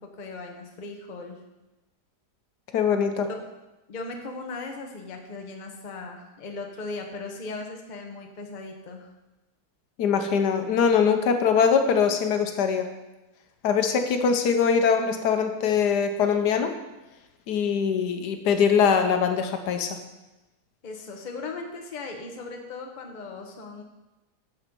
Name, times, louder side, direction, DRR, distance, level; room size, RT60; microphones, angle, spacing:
voice 1, 0.2-1.4 3.9-9.1 20.8-23.8, left 3 dB, 35° left, 3 dB, 0.9 m, -38 dB
voice 2, 2.7-3.3 10.0-12.9 13.6-16.7 17.5-20.0, left 6 dB, 80° left, 6 dB, 1.4 m, -22 dB
7.3 x 7.1 x 5.2 m, 1.0 s
omnidirectional pair, 1.7 m